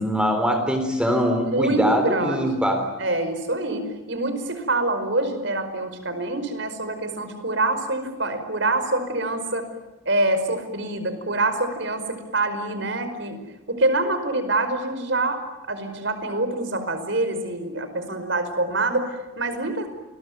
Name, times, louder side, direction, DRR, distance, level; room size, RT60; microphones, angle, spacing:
voice 1, 0.0-2.8, equal, 5° right, 5 dB, 3.7 m, -22 dB
voice 2, 1.5-2.5 3.0-9.6 10.1-13.4 13.7-15.4 15.7-19.9, right 2 dB, 60° right, 9 dB, 5.1 m, -25 dB
28.5 x 22.0 x 9.4 m, 1.1 s
head